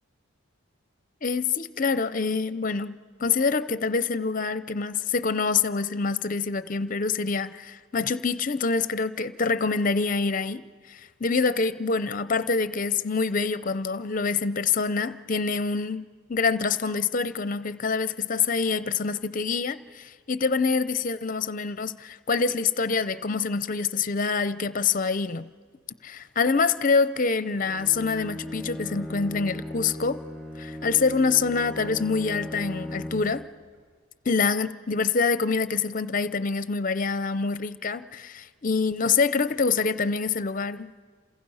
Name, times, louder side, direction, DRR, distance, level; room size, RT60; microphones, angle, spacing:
voice 1, 1.2-10.6 10.9-25.5 26.0-30.2 30.6-33.5 34.3-40.9, left 4 dB, 40° left, 0.6 m, -26 dB
Bowed string instrument, 27.5-33.5, left 1 dB, 5° right, 7.7 m, -38 dB
29.0 x 27.0 x 5.6 m
head